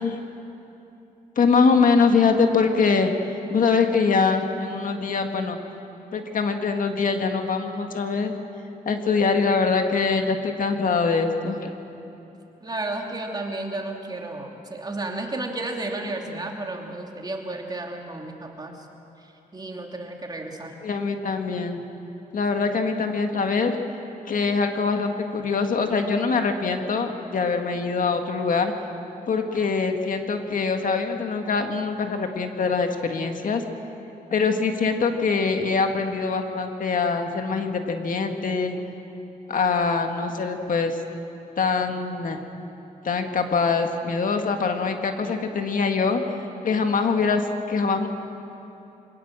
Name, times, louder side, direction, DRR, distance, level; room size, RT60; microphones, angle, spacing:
voice 1, 1.4-3.1 3.5-5.6 6.1-8.3 8.9-11.7 20.8-21.8 22.3-23.8 24.3-28.7 29.3-33.6 34.3-38.8 39.5-41.0 41.6-42.4 43.0-46.2 46.6-48.1, left 4 dB, 60° left, 5 dB, 1.8 m, -23 dB
voice 2, 12.6-18.9 19.5-20.8, right 2 dB, 25° right, 1 dB, 2.9 m, -32 dB
25.0 x 19.0 x 7.5 m, 2.9 s
cardioid pair, 100°, 16 cm